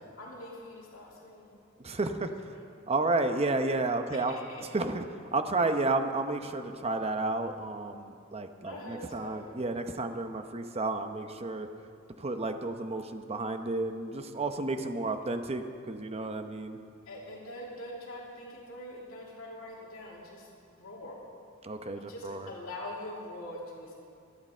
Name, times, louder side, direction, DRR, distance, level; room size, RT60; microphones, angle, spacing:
voice 1, 0.2-1.5 2.5-2.7 4.1-4.6 8.6-9.5 17.1-21.2 21.9-23.9, left 1 dB, 75° left, -3 dB, 2.7 m, -44 dB
voice 2, 1.8-2.3 2.9-5.0 5.3-11.7 12.2-16.8 21.6-22.5, right 2 dB, 30° right, 7 dB, 0.8 m, -31 dB
25.5 x 8.8 x 4.4 m, 2.4 s
head